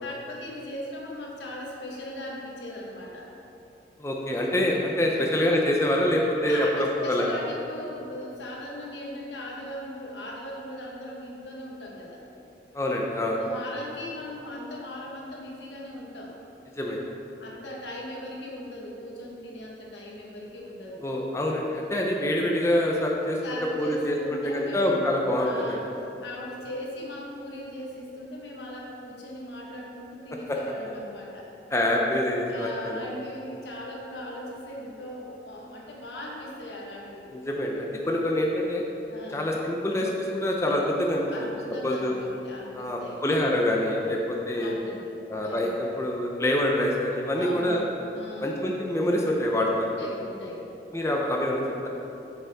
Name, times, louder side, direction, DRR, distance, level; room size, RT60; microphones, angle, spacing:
voice 1, 0.0-3.3 5.0-5.3 6.4-12.2 13.3-16.3 17.4-21.0 23.4-25.0 25.4-25.9 26.2-31.5 32.5-37.4 39.1-39.6 41.3-43.2 44.0-44.1 44.5-45.1 45.4-45.7 47.4-47.8 48.1-48.6 49.7-50.7, left 1 dB, 85° left, -2 dB, 1.3 m, -39 dB
voice 2, 4.0-7.3 12.7-13.4 16.8-17.0 21.0-23.4 23.8-25.8 30.5-30.6 31.7-33.0 37.3-38.8 39.3-41.2 41.8-42.1 42.7-44.8 45.3-47.8 48.4-49.9 50.9-51.9, left 1 dB, 15° left, -1 dB, 0.5 m, -26 dB
7.3 x 6.7 x 3.5 m, 2.9 s
head